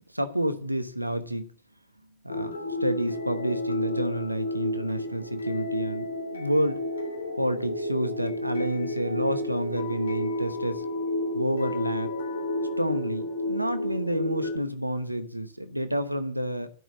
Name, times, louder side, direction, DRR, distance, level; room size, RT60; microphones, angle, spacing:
voice 1, 0.1-1.5 2.2-6.8 7.4-10.8 11.3-12.1 12.8-16.7, right 1 dB, 90° right, 1.0 m, -29 dB
sound 1, 2.3-14.6, left 1 dB, 70° left, 3.6 m, -31 dB
12.0 x 6.1 x 9.1 m
figure-of-eight pair, 90°, 0 cm